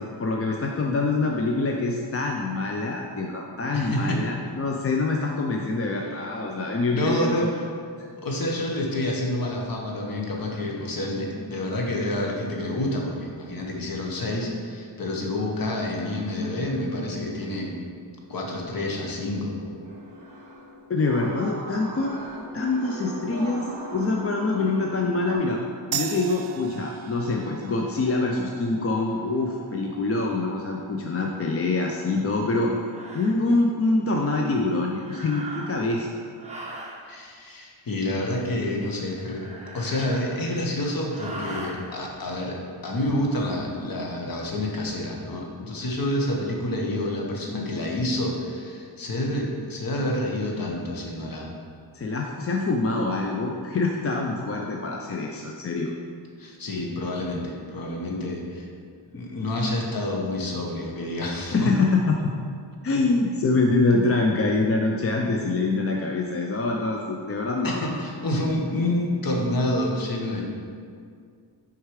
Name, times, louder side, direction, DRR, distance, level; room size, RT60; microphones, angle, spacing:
voice 1, 0.0-7.5 20.9-22.2 22.5-23.7 23.9-25.6 25.9-32.7 33.1-36.1 51.9-55.9 61.5-62.3 62.8-68.0, left 3 dB, 35° left, 1 dB, 0.5 m, -25 dB
voice 2, 3.7-4.2 6.9-7.7 8.2-17.7 18.3-19.6 37.0-39.5 39.7-51.5 56.4-58.7 59.1-61.7 67.6-70.4, left 1 dB, 50° left, -1 dB, 1.3 m, -28 dB
sound 1, 18.3-25.4, right 1 dB, 45° right, 1.7 m, -40 dB
sound 2, 25.9-33.0, right 9 dB, 60° right, 0.5 m, -40 dB
sound 3, 31.9-32.1 32.8-33.4 35.0-35.9 36.4-37.0 39.2-40.6 41.1-41.8, right 1 dB, 15° right, 1.1 m, -39 dB
6.6 x 4.7 x 4.8 m, 2.2 s
wide cardioid pair, 105°, 44 cm